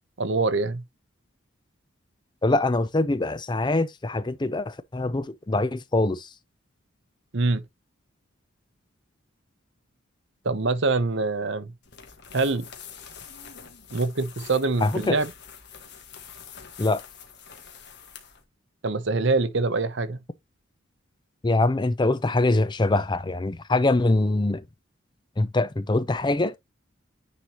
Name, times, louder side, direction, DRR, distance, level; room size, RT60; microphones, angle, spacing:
voice 1, 0.2-0.8 7.3-7.6 10.4-11.7 12.3-12.6 13.9-15.3 18.8-20.2, right 3 dB, 60° right, 0.9 m, -24 dB
voice 2, 2.4-6.3 14.8-15.2 16.8-17.0 21.4-24.6 25.4-26.5, left 2 dB, 20° left, 0.5 m, -23 dB
sound 1, 11.8-18.4, left 7 dB, 55° left, 1.6 m, -45 dB
9.7 x 4.2 x 3.0 m
head